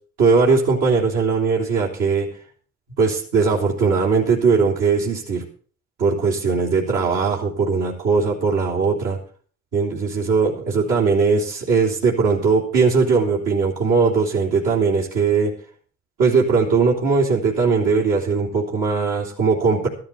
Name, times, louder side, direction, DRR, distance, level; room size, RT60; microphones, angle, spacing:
voice 1, 0.2-2.3 3.0-5.4 6.0-9.2 9.7-15.5 16.2-19.9, right 4 dB, 85° right, -3 dB, 3.8 m, -19 dB
13.0 x 12.5 x 4.3 m, 0.43 s
cardioid pair, 90°, 30 cm